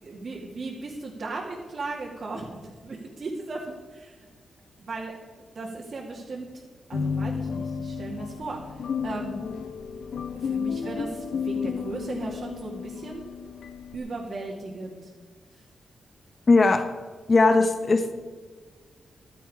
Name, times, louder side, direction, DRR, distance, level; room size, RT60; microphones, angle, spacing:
voice 1, 0.0-4.3 4.8-5.1 5.5-9.5 10.3-13.3 13.9-15.1 15.5-15.7, right 3 dB, 45° right, -3 dB, 2.4 m, -36 dB
sound 1, 6.9-14.0, left 6 dB, 75° left, 1.2 m, -32 dB
voice 2, 16.5-16.8 17.3-18.1, left 3 dB, 35° left, 8 dB, 1.2 m, -19 dB
15.5 x 12.0 x 4.9 m, 1.5 s
wide cardioid pair, 130°, 0 cm